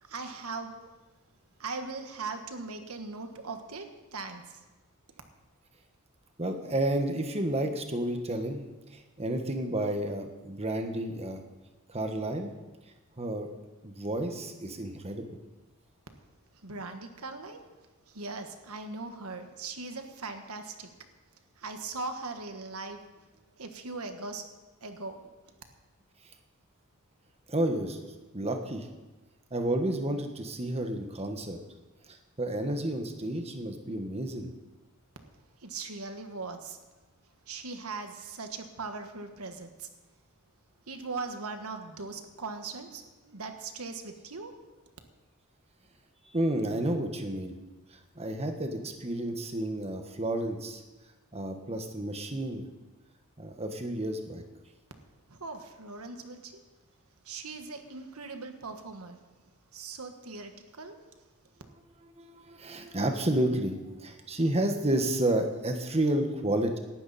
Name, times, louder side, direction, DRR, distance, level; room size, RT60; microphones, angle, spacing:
voice 1, 0.0-0.7 1.6-3.9 4.1-4.6 16.6-17.6 18.1-20.9 21.6-23.0 23.6-24.5 24.8-25.2 35.6-36.8 37.5-39.9 40.9-44.5 55.3-56.5 57.2-59.2 59.7-61.0, right 3 dB, 85° right, 6 dB, 1.5 m, -39 dB
voice 2, 6.4-8.6 8.9-11.4 11.9-12.5 13.2-13.5 13.8-15.4 27.5-28.0 28.3-28.9 29.5-31.6 32.1-34.5 46.3-47.5 48.1-50.8 51.3-52.7 53.4-54.4 62.2-66.8, right 1 dB, 30° right, 5 dB, 1.4 m, -31 dB
17.5 x 12.0 x 4.3 m, 1.1 s
head